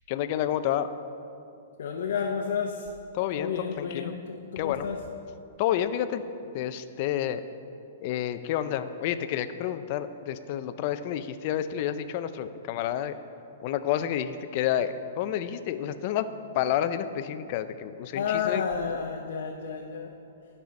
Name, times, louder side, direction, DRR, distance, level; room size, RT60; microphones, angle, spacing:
voice 1, 0.1-0.9 3.1-4.1 4.6-4.9 5.6-6.2 6.5-7.4 8.0-13.1 13.6-16.3 16.5-18.6, left 11 dB, 35° left, 11 dB, 0.4 m, -29 dB
voice 2, 1.8-2.9 3.4-5.1 18.1-20.1, left 6 dB, 70° left, 1 dB, 0.7 m, -31 dB
12.0 x 5.5 x 5.1 m, 2.6 s
hypercardioid pair, 165°, 0 cm